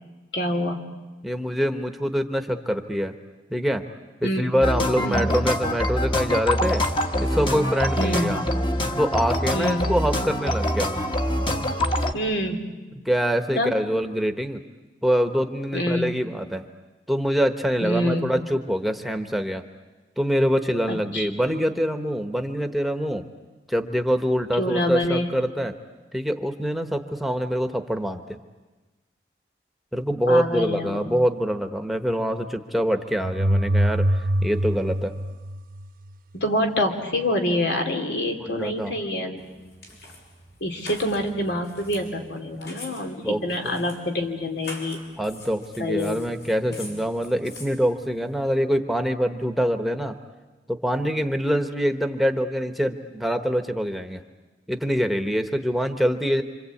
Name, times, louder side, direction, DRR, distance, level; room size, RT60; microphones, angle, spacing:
voice 1, 0.3-0.8 4.2-4.5 5.0-5.3 8.0-8.3 9.5-9.9 12.1-12.6 13.6-13.7 15.7-16.1 17.8-18.3 20.9-21.3 24.6-25.3 30.3-31.1 36.3-39.4 40.6-45.0 45.8-46.3, left 1 dB, 90° left, 4 dB, 2.8 m, -26 dB
voice 2, 1.2-3.1 3.5-3.9 4.2-6.8 7.2-8.4 9.0-10.9 13.0-14.6 15.0-16.7 17.1-19.6 20.2-23.3 23.7-25.7 26.1-28.4 29.9-35.1 38.4-38.9 43.2-43.9 45.2-50.2 50.7-54.2 54.7-56.4, equal, ahead, 6 dB, 1.1 m, -25 dB
sound 1, 4.6-12.1, left 1 dB, 25° left, 1.3 m, -25 dB
sound 2, 33.2-36.1, right 1 dB, 55° right, 0.9 m, -24 dB
sound 3, 39.4-48.5, left 2 dB, 65° left, 6.0 m, -45 dB
26.5 x 26.0 x 8.5 m, 1.2 s
head